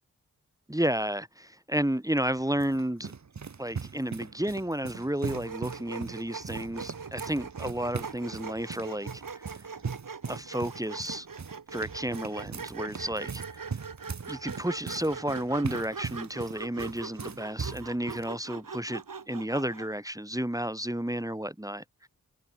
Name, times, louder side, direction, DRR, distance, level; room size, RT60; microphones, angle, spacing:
voice 1, 0.7-3.1 3.6-9.6 10.3-11.3 11.7-13.7 14.3-19.0 19.3-22.1, right 1 dB, 10° right, 3.2 m, -32 dB
sound 1, 2.2-18.3, right 5 dB, 55° right, 1.4 m, -40 dB
Sawing, 5.3-20.0, right 5 dB, 75° right, 4.4 m, -42 dB
wide cardioid pair, 60°, 33 cm